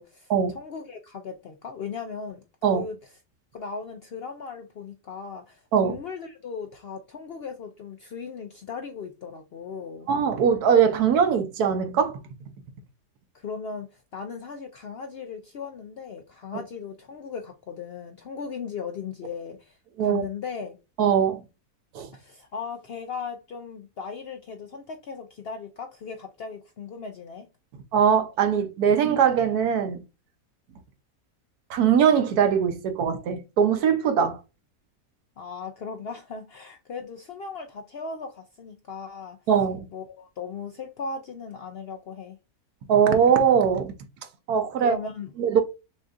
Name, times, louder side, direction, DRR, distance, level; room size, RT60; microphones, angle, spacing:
voice 1, 0.0-2.4 2.7-3.0 3.5-10.1 13.3-20.8 22.1-27.5 35.4-39.4 39.9-42.4 44.8-45.3, left 5 dB, 65° left, 0.6 m, -37 dB
voice 2, 10.1-12.2 20.0-20.2 21.0-21.4 21.9-22.1 27.9-30.0 31.7-34.4 39.5-39.9 42.9-43.9 44.5-45.0 45.4-45.6, right 7 dB, 90° right, 1.3 m, -21 dB
6.2 x 2.6 x 2.4 m
omnidirectional pair, 1.6 m